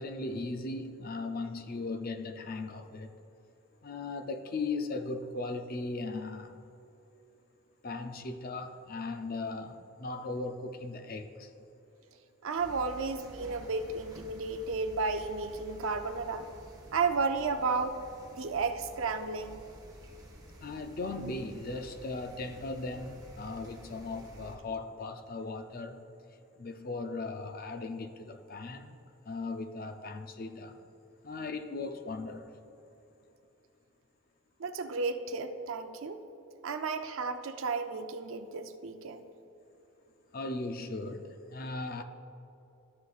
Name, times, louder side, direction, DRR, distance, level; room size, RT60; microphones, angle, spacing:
voice 1, 0.0-3.1 3.8-6.7 7.8-11.5 20.6-26.0 26.6-29.0 29.2-30.8 31.2-32.5 40.3-42.0, left 3 dB, 40° left, 0.5 m, -38 dB
voice 2, 12.4-16.5 16.9-18.0 18.3-19.7 34.6-36.2 36.6-39.3, right 4 dB, 65° right, 0.5 m, -33 dB
sound 1, 12.6-24.6, right 1 dB, 15° right, 1.1 m, -51 dB
13.0 x 6.6 x 2.4 m
head